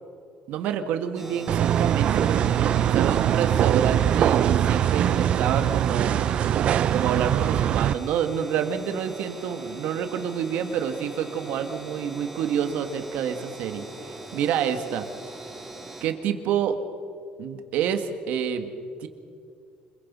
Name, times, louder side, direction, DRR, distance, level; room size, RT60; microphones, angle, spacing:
voice 1, 0.5-6.1 6.9-13.8 14.3-15.1 16.0-16.8 17.4-18.7 19.0-19.1, right 8 dB, 70° right, 8 dB, 1.9 m, -28 dB
sound 1, 1.1-16.0, right 2 dB, 10° right, 3.6 m, -41 dB
sound 2, 1.5-7.9, right 10 dB, 50° right, 0.5 m, -22 dB
26.0 x 23.0 x 5.6 m, 2.3 s
cardioid pair, 145°, 3 cm